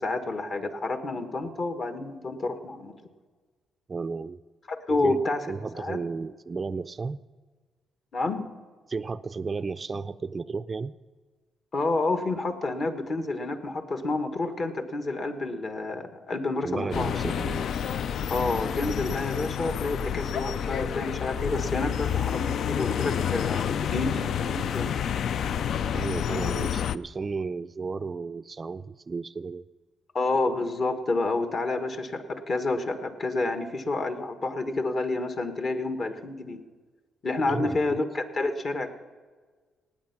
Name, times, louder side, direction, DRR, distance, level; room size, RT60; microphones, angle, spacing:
voice 1, 0.0-3.0 4.7-5.4 5.7-6.0 8.1-8.5 11.7-17.2 18.3-25.0 30.1-36.6 37.2-38.9, left 2 dB, 45° left, 9 dB, 1.4 m, -29 dB
voice 2, 3.9-4.4 4.9-5.2 5.5-7.2 8.9-10.9 16.6-17.7 25.9-29.6 37.5-37.9, right 4 dB, 30° right, 12 dB, 0.4 m, -33 dB
sound 1, 16.9-27.0, left 8 dB, 65° left, 0.4 m, -29 dB
18.0 x 8.5 x 5.9 m, 1.4 s
cardioid pair, 90°, 0 cm